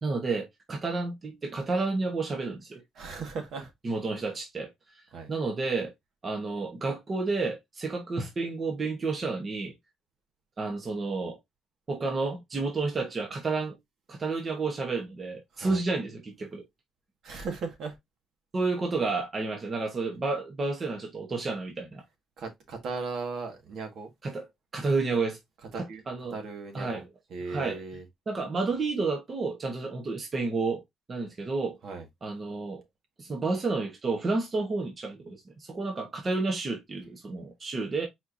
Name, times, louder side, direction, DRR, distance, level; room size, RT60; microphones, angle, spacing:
voice 1, 0.0-2.8 3.8-4.7 5.3-5.9 6.2-9.7 10.6-11.4 11.9-13.8 14.1-16.6 18.5-22.0 24.2-24.5 24.7-25.4 25.7-26.4 26.7-27.0 27.5-27.8 28.3-30.8 31.1-31.8 32.2-32.8 33.2-38.1, right 3 dB, 25° right, 1.1 m, -30 dB
voice 2, 3.0-3.7 5.1-5.3 15.5-15.8 17.2-18.0 22.4-24.1 25.7-26.0 26.3-27.0 27.3-28.1 31.8-32.1, right 4 dB, 65° right, 1.6 m, -37 dB
4.5 x 4.4 x 2.6 m
cardioid pair, 175°, 0 cm